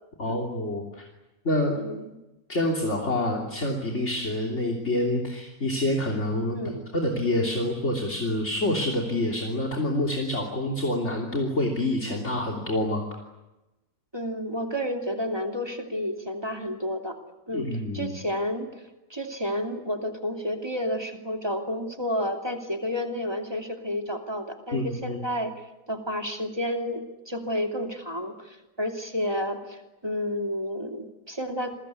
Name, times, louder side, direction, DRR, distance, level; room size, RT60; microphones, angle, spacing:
voice 1, 0.2-1.0 1.5-1.8 2.5-6.6 6.9-13.0 17.5-18.1 24.7-25.2, left 1 dB, 50° left, 0 dB, 3.5 m, -27 dB
voice 2, 1.7-2.1 6.5-6.9 14.1-17.2 17.5-17.7 17.9-18.8 19.1-31.7, equal, 15° right, 3 dB, 2.8 m, -31 dB
28.5 x 22.0 x 8.4 m, 1.0 s
omnidirectional pair, 1.5 m